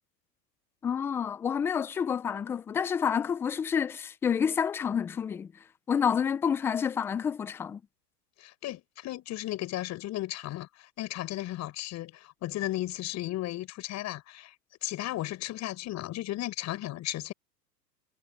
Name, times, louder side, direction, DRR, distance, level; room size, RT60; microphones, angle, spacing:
voice 1, 0.8-5.5 5.9-7.8, left 7 dB, 5° left, 0.4 m, -29 dB
voice 2, 8.4-14.5 14.8-17.3, left 15 dB, 35° left, 5.3 m, -35 dB
hypercardioid pair, 110°, 49 cm